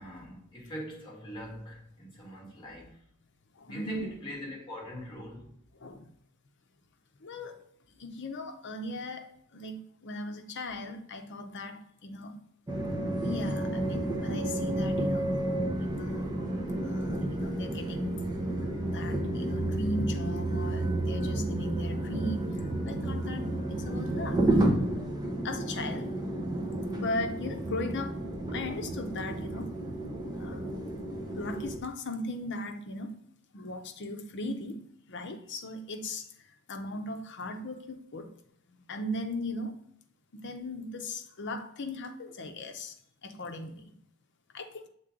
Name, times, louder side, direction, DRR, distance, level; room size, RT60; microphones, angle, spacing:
voice 1, 0.0-3.0 3.7-5.5, left 1 dB, 25° left, 1.9 m, -42 dB
voice 2, 3.6-4.1 5.8-6.1 7.2-7.6 8.0-12.4 13.2-15.3 15.8-16.3 16.7-18.2 18.9-22.5 22.8-24.4 25.4-26.1 26.9-28.2 28.5-29.7 30.3-30.7 31.3-33.1 33.5-34.8 35.1-36.3 36.7-38.3 38.7-39.8 40.3-42.9 43.2-43.8 44.5-44.9, left 2 dB, 55° left, 0.7 m, -38 dB
sound 1, 12.7-31.8, right 1 dB, 20° right, 0.9 m, -31 dB
7.3 x 3.7 x 3.8 m
head